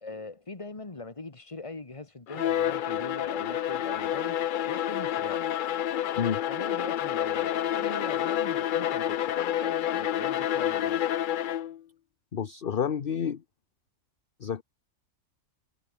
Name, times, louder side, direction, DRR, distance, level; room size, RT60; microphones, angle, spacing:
voice 1, 0.0-5.5 6.4-11.2, left 3 dB, 25° left, 1.8 m, -41 dB
Bowed string instrument, 2.3-11.8, left 11 dB, 65° left, 0.5 m, -29 dB
voice 2, 12.3-13.4 14.4-14.6, left 7 dB, 45° left, 1.1 m, -29 dB
omnidirectional pair, 1.4 m